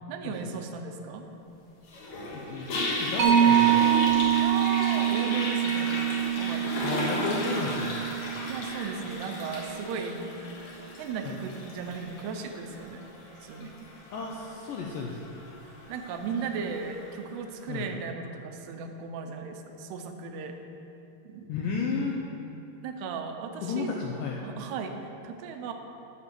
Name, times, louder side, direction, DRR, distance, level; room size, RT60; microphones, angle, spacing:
voice 1, 0.1-1.3 4.3-6.0 6.4-7.0 8.5-10.3 11.0-13.0 13.4-13.7 15.9-20.5 21.3-21.5 22.8-24.1 24.4-25.7, right 5 dB, 85° right, 5 dB, 2.8 m, -36 dB
Toilet flush, 1.9-17.1, left 2 dB, 60° left, 2.2 m, -35 dB
voice 2, 2.3-3.9 6.8-8.0 11.2-11.4 14.1-15.2 17.7-17.9 21.5-22.2 23.6-24.4, left 4 dB, 80° left, -1 dB, 2.0 m, -33 dB
Mallet percussion, 3.2-10.2, right 10 dB, 40° right, 1.7 m, -26 dB
8.4 x 7.0 x 6.7 m, 2.9 s
omnidirectional pair, 4.6 m